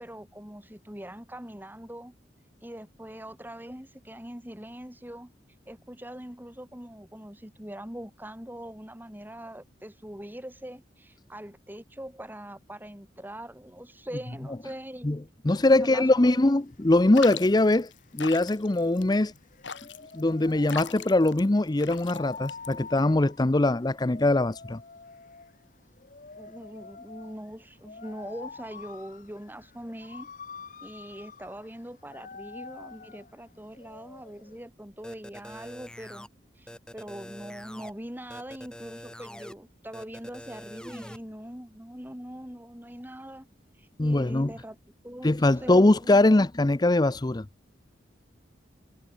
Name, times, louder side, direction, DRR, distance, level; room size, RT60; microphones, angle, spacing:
voice 1, 0.0-2.1 2.6-5.3 5.7-15.2 15.7-16.5 26.4-30.3 30.8-36.3 36.6-43.5 43.8-44.8 45.0-45.3 45.6-45.7 46.0-46.5, equal, 10° right, 4.9 m, -42 dB
voice 2, 15.4-19.3 20.1-24.8 44.0-44.5 45.2-47.5, left 2 dB, 20° left, 0.6 m, -22 dB
sound 1, 16.6-34.6, left 5 dB, 45° left, 1.2 m, -47 dB
sound 2, 17.1-23.1, left 7 dB, 85° left, 2.1 m, -40 dB
sound 3, 35.0-36.3 36.7-37.9 38.3-39.5 39.9-41.2, equal, 5° left, 5.4 m, -44 dB
head